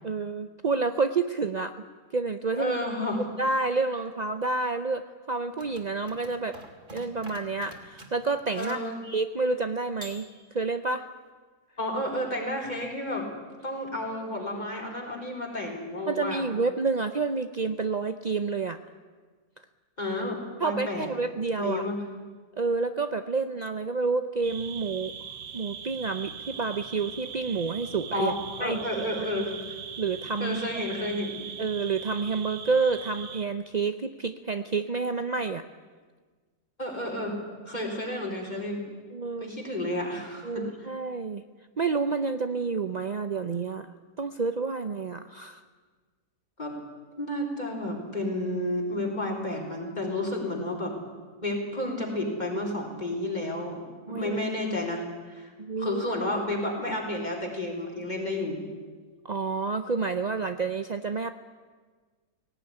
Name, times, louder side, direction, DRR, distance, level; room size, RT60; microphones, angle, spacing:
voice 1, 0.0-1.7 2.1-2.7 3.4-6.6 6.9-10.3 10.5-11.1 16.1-18.8 20.6-21.8 22.6-25.1 25.5-28.3 28.6-29.3 30.0-30.8 31.6-35.6 39.1-39.5 40.4-41.4 41.8-43.9 44.2-45.6 54.1-54.4 55.6-56.0 59.2-61.3, right 4 dB, 65° right, 9 dB, 0.4 m, -29 dB
voice 2, 2.5-3.2 8.6-9.0 11.8-13.3 13.6-16.5 20.0-21.1 21.6-22.0 28.1-29.8 30.4-31.4 36.8-38.9 39.4-40.7 46.6-46.8 47.2-51.0 51.4-53.8 54.1-55.5 55.8-58.7, left 1 dB, 25° left, 0 dB, 4.3 m, -31 dB
sound 1, 5.5-8.9 10.0-10.8, right 1 dB, 30° right, 2.8 m, -47 dB
sound 2, 24.4-33.4, right 7 dB, 90° right, 1.8 m, -41 dB
18.0 x 17.5 x 9.9 m, 1.5 s
omnidirectional pair, 1.7 m